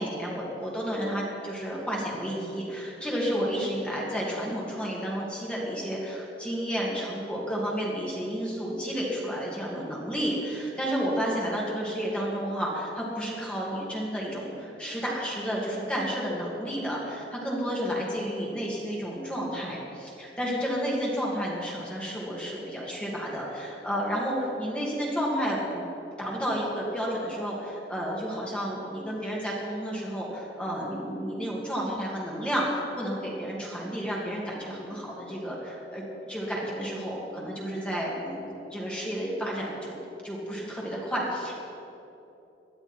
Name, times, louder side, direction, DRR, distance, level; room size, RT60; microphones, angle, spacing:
voice 1, 0.0-25.8 26.2-36.0 36.3-39.9 40.2-41.5, equal, 5° left, -5 dB, 2.5 m, -31 dB
19.5 x 12.0 x 4.5 m, 3.0 s
head